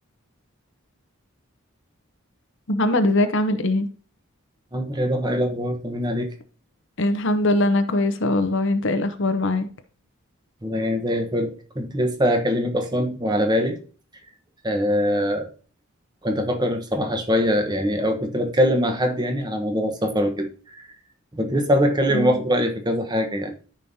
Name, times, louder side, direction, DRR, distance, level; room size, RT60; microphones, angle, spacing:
voice 1, 2.7-3.9 7.0-9.7 22.1-22.4, left 1 dB, 60° left, 0.8 m, -21 dB
voice 2, 4.7-6.3 10.6-13.8 14.6-15.5 16.2-20.9 21.3-23.5, equal, 20° right, 1.1 m, -23 dB
13.5 x 5.2 x 2.8 m
head